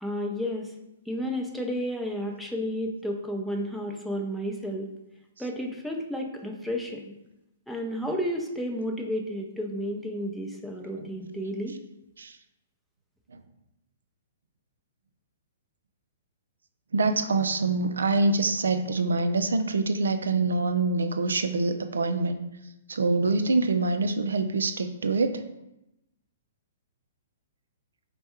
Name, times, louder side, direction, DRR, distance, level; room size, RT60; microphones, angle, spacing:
voice 1, 0.0-0.7 1.1-4.9 5.4-7.1 7.7-11.8, equal, ahead, 0 dB, 0.5 m, -32 dB
voice 2, 16.9-22.4 22.9-25.4, right 3 dB, 85° right, 9 dB, 0.3 m, -25 dB
3.4 x 2.2 x 4.3 m, 0.89 s
hypercardioid pair, 130°, 0 cm